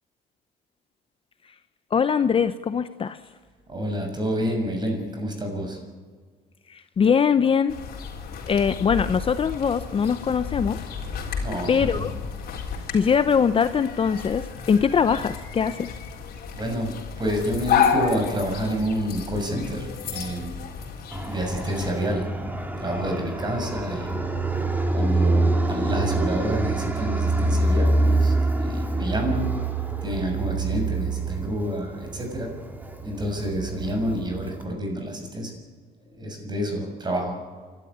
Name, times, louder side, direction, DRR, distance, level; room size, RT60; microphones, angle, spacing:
voice 1, 1.9-3.2 6.7-7.8 8.5-10.8 11.7-12.1 12.9-15.9, left 6 dB, 35° left, 12 dB, 0.7 m, -22 dB
voice 2, 3.7-5.8 11.4-12.1 16.5-20.5 21.2-22.2 22.8-24.1 24.9-29.5 30.0-32.5 33.0-35.5 36.1-37.3, equal, 25° right, 3 dB, 6.7 m, -28 dB
sound 1, 7.7-21.9, left 7 dB, 65° left, 3.9 m, -31 dB
Fixed-wing aircraft airplane, 21.1-34.6, right 2 dB, 10° right, 2.3 m, -26 dB
28.5 x 12.5 x 9.9 m, 1.5 s
cardioid pair, 110°, 17 cm